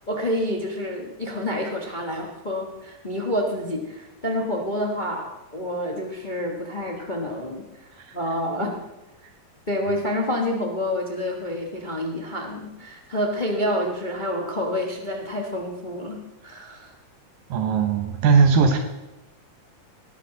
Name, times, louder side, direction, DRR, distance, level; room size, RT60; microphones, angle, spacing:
voice 1, 0.1-7.6 8.1-8.8 9.7-16.9, left 1 dB, 50° left, 0 dB, 0.5 m, -28 dB
voice 2, 17.5-18.8, right 5 dB, 85° right, 5 dB, 2.8 m, -19 dB
18.5 x 11.5 x 4.0 m, 1.0 s
omnidirectional pair, 3.8 m